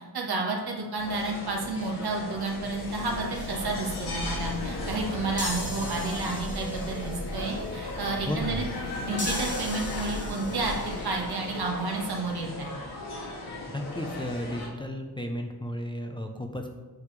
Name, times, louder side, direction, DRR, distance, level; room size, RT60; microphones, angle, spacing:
voice 1, 0.1-8.7 9.0-10.8 11.0-12.7, right 3 dB, 70° right, 0 dB, 1.6 m, -31 dB
sound 1, 1.0-14.7, left 2 dB, 80° left, 2.5 m, -37 dB
sound 2, 2.3-11.5, left 1 dB, 55° left, 0.9 m, -38 dB
sound 3, 3.3-4.2 5.4-7.3 9.2-11.1, left 2 dB, 30° left, 1.7 m, -39 dB
voice 2, 8.3-8.6 13.7-16.7, left 1 dB, 10° left, 3 dB, 0.7 m, -33 dB
8.4 x 6.4 x 3.4 m, 1.2 s
wide cardioid pair, 125°, 39 cm